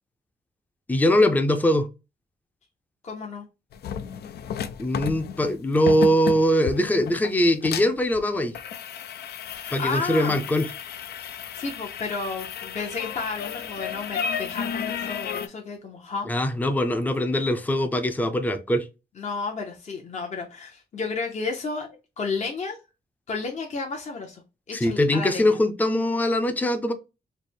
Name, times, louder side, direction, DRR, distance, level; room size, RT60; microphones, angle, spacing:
voice 1, 0.9-1.9 4.8-8.5 9.7-10.7 16.3-18.9 24.7-26.9, equal, 10° left, 0.5 m, -22 dB
voice 2, 3.0-3.5 9.5-10.4 11.3-16.3 19.2-21.9 22.2-22.8 23.3-24.4 24.7-25.6, left 4 dB, 45° left, 0.7 m, -32 dB
sound 1, 3.7-15.5, left 7 dB, 80° left, 0.4 m, -33 dB
3.2 x 2.1 x 4.2 m
cardioid pair, 105°, 16 cm